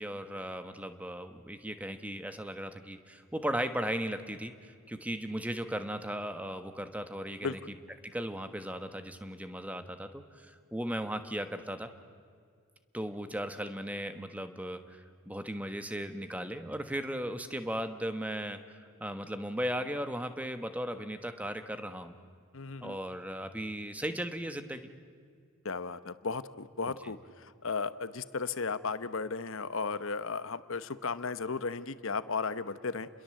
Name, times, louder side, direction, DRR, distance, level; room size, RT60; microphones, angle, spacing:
voice 1, 0.0-7.6 8.0-11.9 12.9-22.2 22.8-24.9 27.0-27.1, equal, 5° right, 9 dB, 1.2 m, -37 dB
voice 2, 22.5-23.0 25.6-33.1, left 4 dB, 65° left, 13 dB, 1.0 m, -35 dB
29.5 x 22.0 x 7.8 m, 2.2 s
head